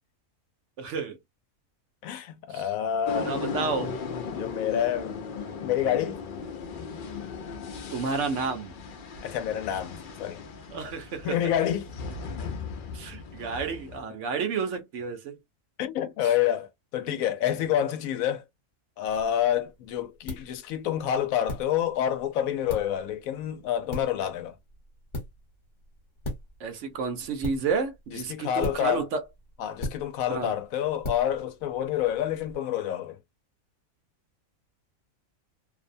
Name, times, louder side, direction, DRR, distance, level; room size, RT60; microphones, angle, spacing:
voice 1, 0.8-1.2 2.5-2.7 3.2-3.9 7.9-8.7 10.7-11.4 12.9-15.4 17.1-17.2 26.6-29.2 30.3-30.5, right 5 dB, 65° right, 0.9 m, -31 dB
voice 2, 2.0-3.3 4.3-5.2 5.6-6.2 9.2-10.4 11.2-11.9 15.8-18.4 19.0-24.5 28.1-29.1 29.6-33.2, left 10 dB, 80° left, 1.0 m, -28 dB
sound 1, 3.1-14.0, left 5 dB, 60° left, 0.5 m, -37 dB
sound 2, 19.1-32.5, left 1 dB, 35° left, 1.1 m, -41 dB
2.6 x 2.1 x 2.5 m
omnidirectional pair, 1.4 m